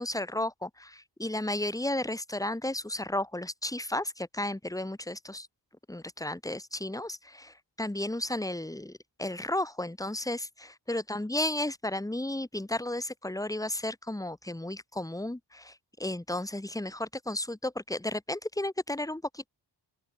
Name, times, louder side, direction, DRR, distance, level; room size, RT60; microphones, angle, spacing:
voice 1, 0.0-5.5 5.9-19.5, left 1 dB, 10° left, 2.2 m, -33 dB
open air
wide cardioid pair, 175°, 43 cm